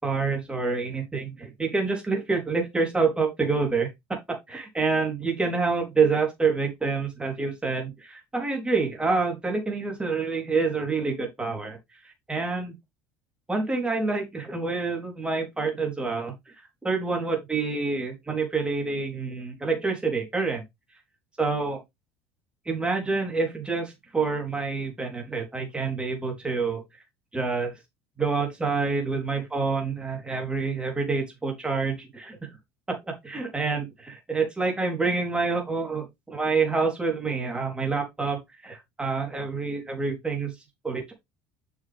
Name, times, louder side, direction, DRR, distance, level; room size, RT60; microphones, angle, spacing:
voice 1, 0.0-4.2 4.5-11.8 12.0-12.7 13.5-16.5 16.8-20.6 21.4-21.8 22.7-26.8 27.3-27.8 28.2-32.4 32.9-33.0 33.2-40.5 40.8-41.1, right 4 dB, 15° right, 3.8 m, -27 dB
6.9 x 6.7 x 3.6 m
supercardioid pair, 90°, 8 cm